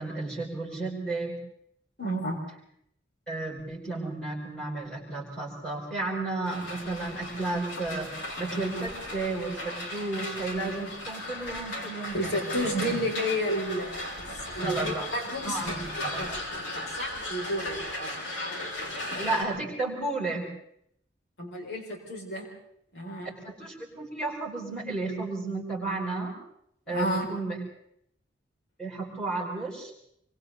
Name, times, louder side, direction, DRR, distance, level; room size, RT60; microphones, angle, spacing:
voice 1, 0.0-1.4 3.3-12.2 12.4-13.0 14.6-15.1 15.4-16.2 19.2-20.5 23.4-26.3 26.9-27.6 28.8-29.9, right 2 dB, 5° left, -7 dB, 7.0 m, -33 dB
voice 2, 2.0-2.4 12.1-15.7 16.2-18.7 19.0-19.1 21.4-22.5 22.9-23.3 26.9-27.3, equal, 65° left, -1 dB, 6.6 m, -32 dB
sound 1, 6.4-19.4, left 1 dB, 90° left, 5.1 m, -36 dB
26.5 x 25.5 x 4.2 m, 0.73 s
head